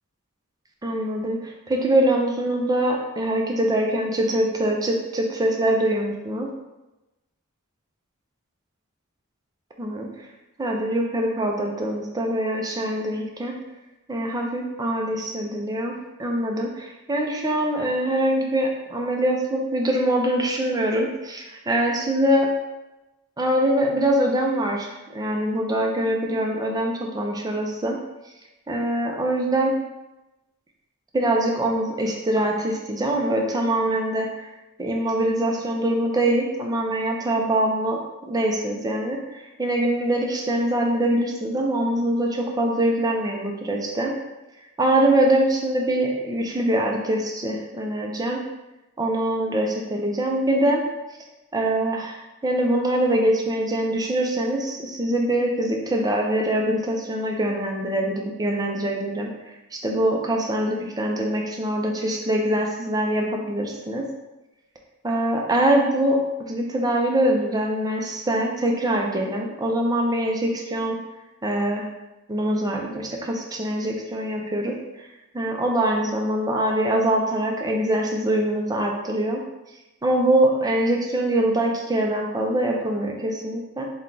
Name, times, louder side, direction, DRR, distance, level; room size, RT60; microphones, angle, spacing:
voice 1, 0.8-6.5 9.8-10.3 10.6-13.6 14.1-15.9 16.2-22.5 23.4-28.0 28.7-29.7 31.1-34.5 34.8-38.0 38.3-44.1 44.8-48.4 49.0-50.8 51.5-59.3 59.7-64.1 65.0-66.2 66.5-71.0 71.4-71.9 72.3-75.1 75.3-79.4 80.0-83.8, right 1 dB, 15° right, 0 dB, 0.5 m, -23 dB
4.4 x 2.3 x 3.8 m, 1.0 s
head